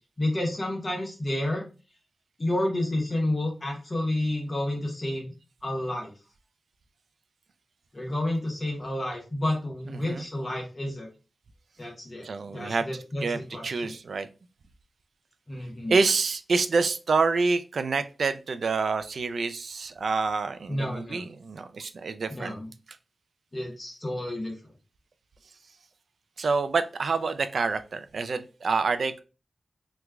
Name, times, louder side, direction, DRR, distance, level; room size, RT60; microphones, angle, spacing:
voice 1, 0.2-1.6 2.4-5.3 5.6-6.1 7.9-11.1 11.8-12.3 12.5-13.9 15.5-15.9 20.7-21.2 22.3-22.7 23.5-24.5, left 1 dB, 40° left, 0 dB, 1.0 m, -30 dB
voice 2, 9.8-10.3 12.2-14.3 15.9-22.6 26.4-29.2, right 4 dB, 75° right, 10 dB, 0.3 m, -27 dB
3.0 x 2.3 x 3.4 m, 0.33 s
wide cardioid pair, 70°, 0 cm